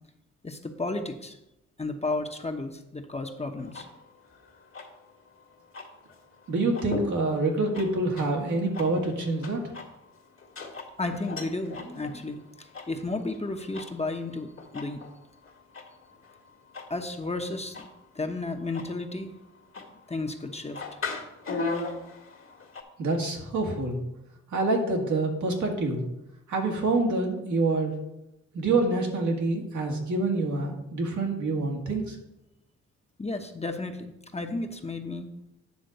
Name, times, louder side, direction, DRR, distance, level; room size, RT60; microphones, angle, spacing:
voice 1, 0.4-1.4 1.8-3.9 11.0-15.0 16.9-17.9 18.1-19.4 20.1-21.0 33.2-35.3, left 2 dB, 20° left, 4 dB, 1.0 m, -33 dB
sound 1, 3.6-22.8, left 3 dB, 50° left, 1.6 m, -40 dB
voice 2, 6.5-9.6 23.0-24.0 24.5-26.0 26.5-27.9 28.5-32.2, right 2 dB, 80° right, 0 dB, 1.8 m, -26 dB
9.6 x 3.7 x 6.5 m, 0.88 s
cardioid pair, 65°, 29 cm